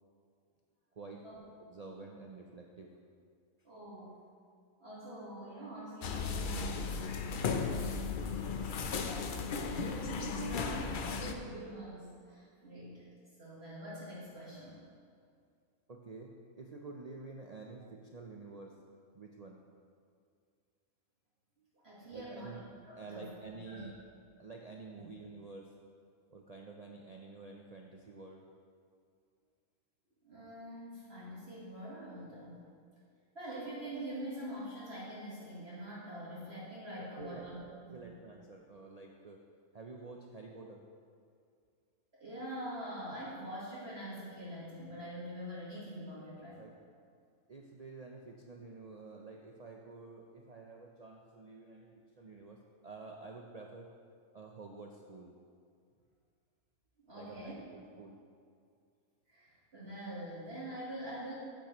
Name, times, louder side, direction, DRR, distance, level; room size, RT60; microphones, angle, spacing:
voice 1, 0.9-1.2 1.6-2.9 15.9-18.8 19.1-19.6 21.6-21.7 22.1-22.6 22.9-24.0 24.4-25.7 26.3-28.5 37.0-39.4 39.7-40.8 46.6-46.7 47.5-53.9 54.3-55.3 57.1-58.2, right 3 dB, 85° right, 0 dB, 0.3 m, -49 dB
voice 2, 3.6-4.2 4.8-6.9 8.5-8.7 9.0-13.0 13.4-14.8 21.8-22.5 22.8-23.3 23.7-23.9 30.2-32.6 33.3-37.6 37.8-38.1 42.2-46.6 57.1-57.6 59.3-61.3, right 1 dB, 45° right, -8 dB, 1.8 m, -44 dB
sound 1, 6.0-11.3, left 5 dB, 90° left, 0.4 m, -35 dB
9.9 x 9.0 x 3.0 m, 2.2 s
omnidirectional pair, 1.5 m